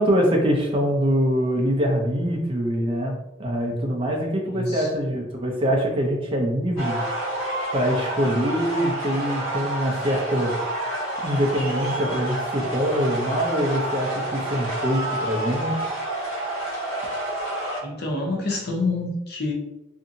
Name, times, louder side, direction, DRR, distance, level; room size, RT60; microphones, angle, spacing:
voice 1, 0.0-7.0 7.7-10.5 11.2-15.9, equal, 25° right, 1 dB, 0.4 m, -24 dB
voice 2, 4.5-4.9 17.8-19.5, left 2 dB, 50° left, 0 dB, 0.7 m, -27 dB
sound 1, 6.8-17.8, right 1 dB, 75° left, 1.1 m, -29 dB
2.7 x 2.5 x 2.6 m, 0.95 s
head